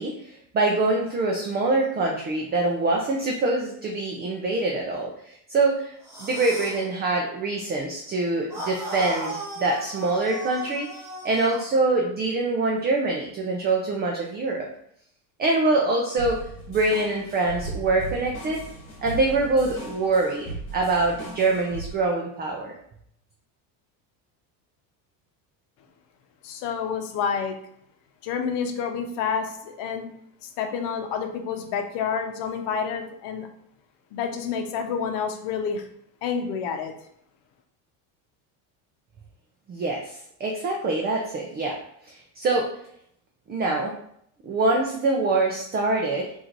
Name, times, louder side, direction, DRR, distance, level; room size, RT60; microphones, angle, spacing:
voice 1, 0.0-14.7 15.4-18.6 19.0-22.7 39.7-41.8 42.0-42.7 43.5-43.9 44.4-46.3, right 2 dB, 25° right, 0 dB, 0.4 m, -25 dB
sound 1, 6.0-6.8 8.5-11.7, right 1 dB, 5° right, 1.2 m, -36 dB
sound 2, 16.2-21.9, right 2 dB, 25° left, 1.3 m, -38 dB
voice 2, 26.4-27.5 28.2-30.1 30.4-33.5 34.1-35.9 36.2-36.9, left 6 dB, 65° left, 5 dB, 0.9 m, -29 dB
3.8 x 2.7 x 4.4 m, 0.71 s
cardioid pair, 140°, 45 cm